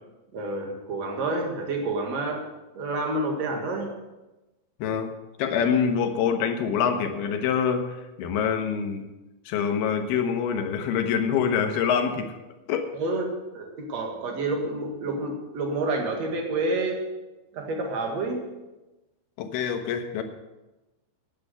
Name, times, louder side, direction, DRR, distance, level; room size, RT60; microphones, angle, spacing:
voice 1, 0.3-2.4 2.8-3.9 12.9-13.2 13.5-17.0 17.5-18.5, right 2 dB, 55° right, 2 dB, 2.2 m, -29 dB
voice 2, 4.8-5.1 5.4-7.9 8.2-9.1 9.5-12.3 12.7-12.9 19.4-20.2, left 7 dB, 70° left, 6 dB, 2.7 m, -25 dB
10.5 x 8.4 x 8.0 m, 1.1 s
omnidirectional pair, 5.2 m